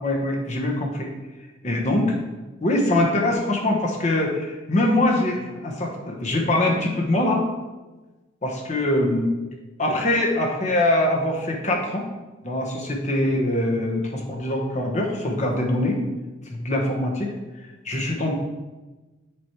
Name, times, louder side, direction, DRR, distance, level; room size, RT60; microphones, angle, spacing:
voice 1, 0.0-1.1 1.6-2.2 2.6-7.4 8.4-9.3 9.8-12.1 12.4-16.0 16.5-17.3 17.8-18.3, left 1 dB, 35° left, 0 dB, 1.2 m, -23 dB
7.7 x 5.1 x 4.7 m, 1.2 s
head